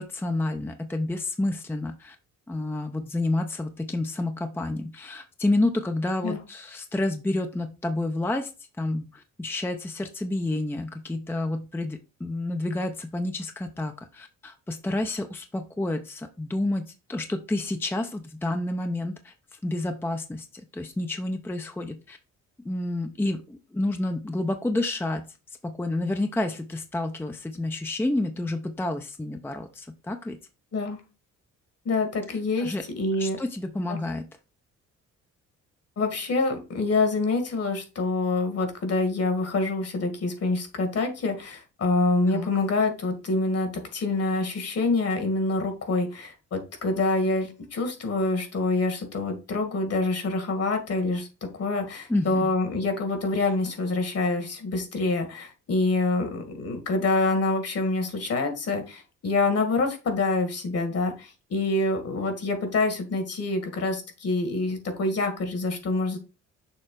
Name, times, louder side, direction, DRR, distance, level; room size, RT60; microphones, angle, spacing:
voice 1, 0.0-2.2 2.5-8.5 8.8-22.2 22.6-25.3 25.6-30.4 32.3-32.8 33.2-34.3 42.3-42.5 52.1-52.5, left 2 dB, 5° left, 6 dB, 0.6 m, -29 dB
voice 2, 31.9-33.4 33.9-34.0 36.0-51.3 51.5-66.2, left 3 dB, 55° left, 6 dB, 1.9 m, -26 dB
6.7 x 3.1 x 4.6 m, 0.30 s
cardioid pair, 90°, 30 cm